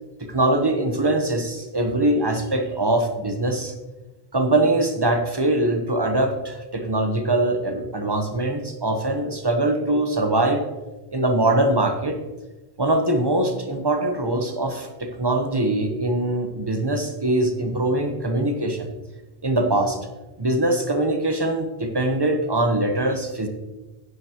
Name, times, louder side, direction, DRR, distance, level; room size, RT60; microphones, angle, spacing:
voice 1, 0.3-3.7 4.3-10.6 11.1-12.2 12.8-18.9 19.4-20.0 20.4-23.5, right 1 dB, 25° right, 5 dB, 1.0 m, -22 dB
11.0 x 9.7 x 2.9 m, 1.1 s
omnidirectional pair, 1.0 m